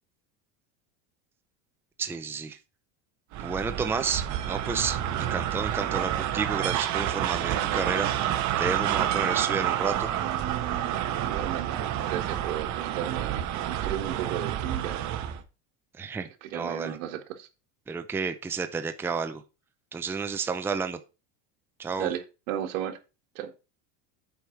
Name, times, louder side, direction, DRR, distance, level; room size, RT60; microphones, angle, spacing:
voice 1, 2.0-2.6 3.4-8.1 8.6-10.1 16.0-17.0 17.9-19.4 19.9-21.0 21.8-22.1, right 5 dB, 5° right, 0.5 m, -31 dB
sound 1, 3.3-15.4, right 11 dB, 45° right, 1.3 m, -29 dB
voice 2, 11.2-11.8 12.1-15.0 16.4-17.5 22.0-23.0 23.4-23.5, right 11 dB, 90° right, 1.8 m, -34 dB
8.2 x 5.0 x 5.7 m
supercardioid pair, 150°, 39 cm